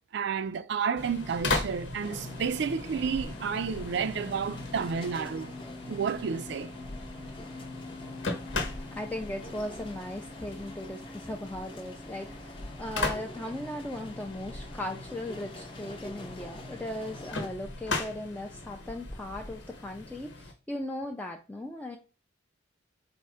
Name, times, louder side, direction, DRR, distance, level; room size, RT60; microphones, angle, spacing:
voice 1, 0.0-5.5 5.9-6.7, right 6 dB, 65° right, 0.4 m, -31 dB
sound 1, 1.0-20.5, left 2 dB, 80° left, 1.1 m, -38 dB
sound 2, 2.0-17.5, left 2 dB, 30° left, 0.7 m, -46 dB
voice 2, 8.9-22.0, left 1 dB, 10° left, 0.4 m, -38 dB
4.3 x 2.5 x 4.8 m
head